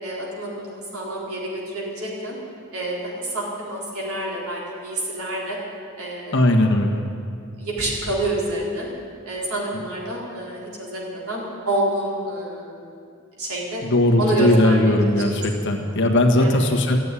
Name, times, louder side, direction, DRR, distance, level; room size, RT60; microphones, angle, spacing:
voice 1, 0.0-2.4 2.7-5.6 6.0-6.4 7.6-8.9 9.2-12.9 13.4-13.8 14.2-15.2 16.4-16.6, right 1 dB, 75° right, -4 dB, 4.2 m, -28 dB
voice 2, 6.3-7.0 9.7-9.8 13.8-17.0, left 1 dB, 55° left, 2 dB, 1.6 m, -18 dB
14.0 x 9.3 x 10.0 m, 2.4 s
head